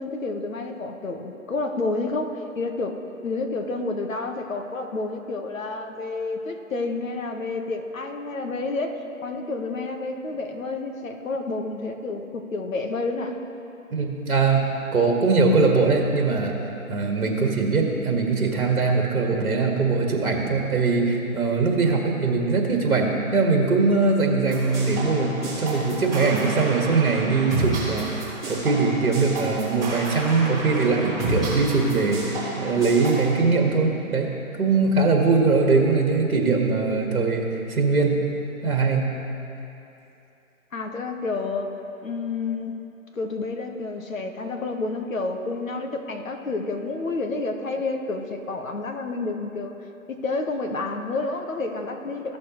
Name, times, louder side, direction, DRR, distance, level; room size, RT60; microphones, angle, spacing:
voice 1, 0.0-9.0 9.2-13.4 40.7-41.7 42.0-42.7 43.1-49.7 50.1-52.4, left 3 dB, 65° left, 4 dB, 1.2 m, -29 dB
voice 2, 13.9-16.6 16.9-34.3 34.6-38.2 38.6-39.1, right 4 dB, 70° right, 1 dB, 1.8 m, -21 dB
sound 1, 24.5-33.3, right 2 dB, 5° left, 0.8 m, -31 dB
15.5 x 6.5 x 3.0 m, 2.8 s
hypercardioid pair, 170°, 43 cm